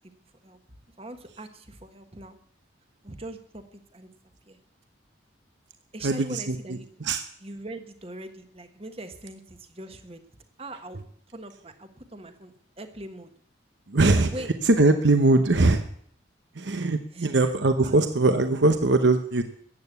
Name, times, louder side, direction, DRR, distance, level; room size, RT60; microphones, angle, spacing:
voice 1, 1.0-2.4 3.0-4.1 4.5-4.6 5.9-6.8 7.4-10.2 10.6-11.0 11.3-13.3 14.3-14.5 17.1-17.5 17.8-18.0, right 1 dB, 30° right, 8 dB, 1.4 m, -41 dB
voice 2, 6.0-7.2 13.9-14.3 14.6-15.9 16.5-19.4, right 2 dB, 70° right, 8 dB, 0.9 m, -21 dB
14.0 x 9.1 x 8.2 m, 0.63 s
head